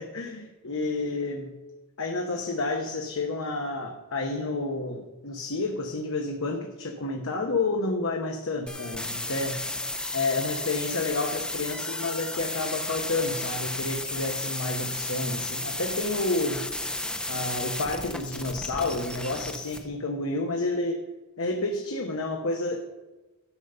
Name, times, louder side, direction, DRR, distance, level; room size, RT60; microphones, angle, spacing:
voice 1, 0.0-1.5 2.0-9.7 10.1-16.7 17.3-21.0 21.4-22.8, left 2 dB, 65° left, 2 dB, 1.1 m, -30 dB
sound 1, 8.7-19.8, left 2 dB, 5° left, 0.7 m, -33 dB
11.5 x 5.2 x 6.8 m, 1.1 s
head